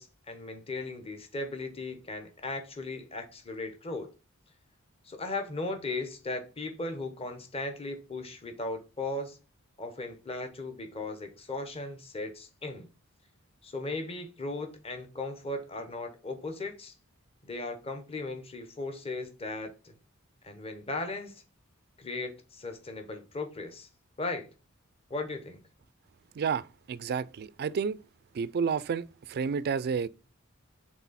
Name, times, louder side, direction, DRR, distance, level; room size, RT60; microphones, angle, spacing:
voice 1, 0.0-4.1 5.0-9.4 9.8-12.9 13.6-16.9 17.4-19.9 20.4-21.4 22.0-23.9 24.2-24.5 25.1-25.6, left 2 dB, 30° left, 1.0 m, -37 dB
voice 2, 26.4-28.0 28.3-30.1, right 6 dB, 50° right, 0.4 m, -30 dB
6.1 x 3.8 x 4.1 m
head